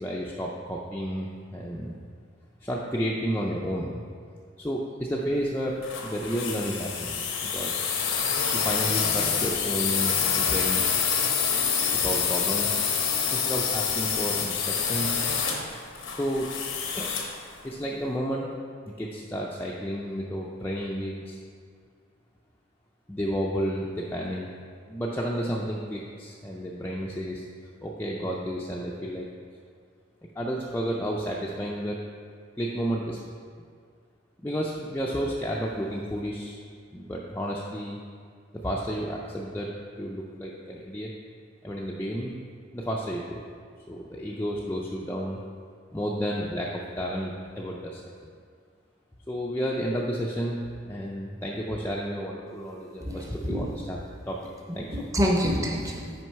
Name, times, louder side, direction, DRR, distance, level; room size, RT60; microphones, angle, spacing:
voice 1, 0.0-2.0 2.6-4.0 4.6-7.3 7.5-7.9 8.6-10.8 11.9-12.8 13.3-15.2 16.1-16.5 16.9-17.2 17.6-18.5 19.0-21.4 23.1-24.5 24.9-27.5 27.8-29.3 30.4-32.0 32.6-33.2 34.4-36.6 36.9-38.0 38.6-39.7 40.0-41.1 41.6-42.4 42.7-43.4 43.9-45.4 45.9-48.3 49.3-54.0 54.3-54.4 54.7-54.9, equal, 10° left, -4 dB, 0.4 m, -31 dB
sound 1, 5.8-17.4, left 6 dB, 85° left, 0.8 m, -27 dB
voice 2, 53.0-53.7 54.7-56.1, equal, 15° right, -1 dB, 0.7 m, -27 dB
6.1 x 4.8 x 4.6 m, 2.1 s
head